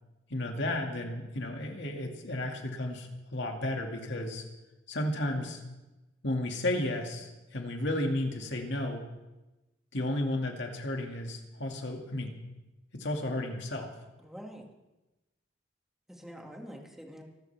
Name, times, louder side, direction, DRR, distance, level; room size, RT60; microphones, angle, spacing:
voice 1, 0.3-4.4 4.9-5.6 6.2-9.0 9.9-12.3 12.9-13.9, left 1 dB, 65° left, 2 dB, 2.4 m, -33 dB
voice 2, 14.2-14.7 16.1-17.2, equal, ahead, 0 dB, 2.2 m, -46 dB
25.0 x 13.0 x 3.6 m, 1.0 s
head